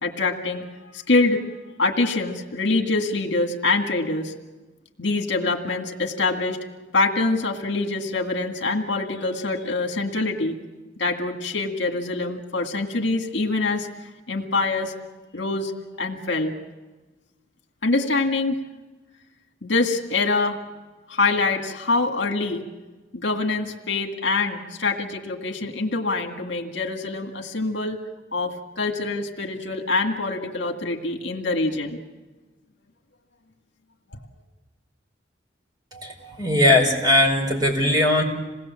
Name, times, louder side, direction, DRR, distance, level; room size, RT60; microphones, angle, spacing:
voice 1, 0.0-1.4 1.8-4.3 5.0-6.6 6.9-10.6 11.0-13.9 14.3-14.9 15.3-15.7 16.0-16.5 17.8-18.6 19.6-20.6 21.1-22.6 23.1-28.0 28.3-32.0, left 3 dB, 65° left, 3 dB, 2.1 m, -24 dB
voice 2, 35.9-38.2, left 1 dB, 20° right, 1 dB, 4.7 m, -19 dB
27.5 x 19.5 x 7.6 m, 1.2 s
head